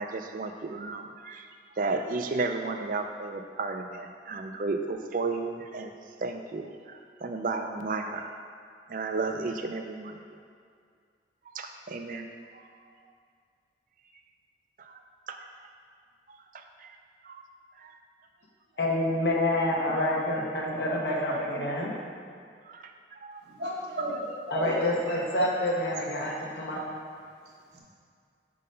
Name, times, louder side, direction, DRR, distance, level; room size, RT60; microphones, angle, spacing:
voice 1, 0.0-1.5 1.8-5.9 6.2-8.3 8.9-10.4 11.5-12.3 12.5-12.6 14.8-15.0 15.3-15.5 16.3-17.0 17.2-17.4 17.8-18.0 22.6-22.8 23.1-23.4, right 3 dB, 50° right, 5 dB, 0.4 m, -33 dB
voice 2, 18.8-21.9 24.5-26.8, left 1 dB, 70° left, -3 dB, 0.9 m, -27 dB
voice 3, 23.5-24.9 27.7-27.8, right 1 dB, 75° right, -5 dB, 1.2 m, -32 dB
5.4 x 3.8 x 5.2 m, 2.2 s
head